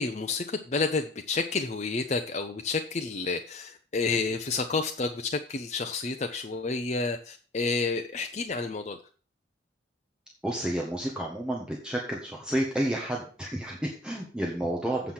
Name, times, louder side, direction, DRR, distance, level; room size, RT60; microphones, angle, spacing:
voice 1, 0.0-9.0, left 4 dB, 40° left, 5 dB, 0.7 m, -30 dB
voice 2, 10.4-15.1, right 1 dB, 5° right, -2 dB, 1.5 m, -31 dB
8.3 x 5.8 x 7.3 m, 0.40 s
head